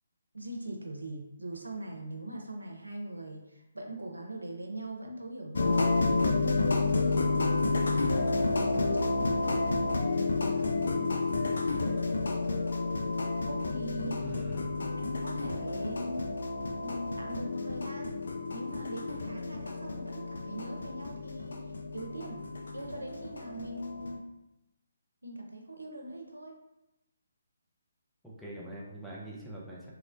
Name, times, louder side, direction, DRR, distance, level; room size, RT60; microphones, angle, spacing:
voice 1, 0.3-7.9 8.6-9.6 10.2-11.1 13.4-14.2 15.0-16.3 16.8-18.1 18.5-21.6 21.9-22.5 22.7-24.2 25.2-26.5, right 1 dB, 85° right, 2 dB, 0.5 m, -41 dB
sound 1, 5.6-24.2, left 3 dB, 65° left, 0.3 m, -30 dB
voice 2, 11.3-11.8 14.2-15.0 28.2-29.9, right 1 dB, ahead, -7 dB, 0.4 m, -44 dB
3.0 x 2.1 x 2.5 m, 0.91 s
figure-of-eight pair, 140°, 0 cm